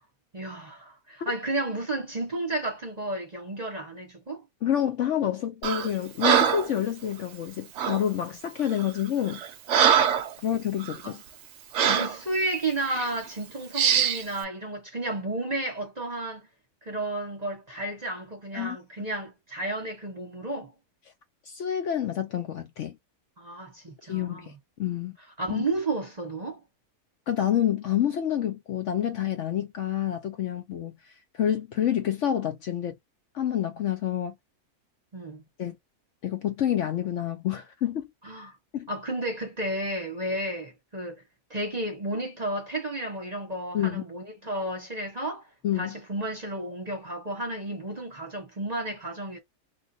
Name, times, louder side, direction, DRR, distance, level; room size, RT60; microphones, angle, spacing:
voice 1, 0.3-4.5 11.0-11.2 11.9-16.5 16.8-20.7 23.4-24.5 25.4-26.6 35.1-35.4 38.2-38.6 38.9-41.2 41.5-45.5 45.8-49.4, right 2 dB, 30° right, 1.0 m, -32 dB
voice 2, 4.6-9.4 10.4-11.2 18.5-18.8 21.5-23.0 24.1-25.2 25.5-25.7 27.3-30.9 31.3-32.9 33.3-34.3 35.6-35.8 36.2-38.1 38.7-38.9 43.7-44.0 45.6-46.0, left 10 dB, 60° left, 0.9 m, -28 dB
Breathing, 5.6-5.9 6.2-6.7 7.8-8.0 8.7-8.9 9.3-10.3 10.8-11.0 11.7-12.2 12.9-13.1 13.7-14.2, right 8 dB, 60° right, 0.8 m, -23 dB
3.2 x 2.5 x 2.6 m
omnidirectional pair, 1.6 m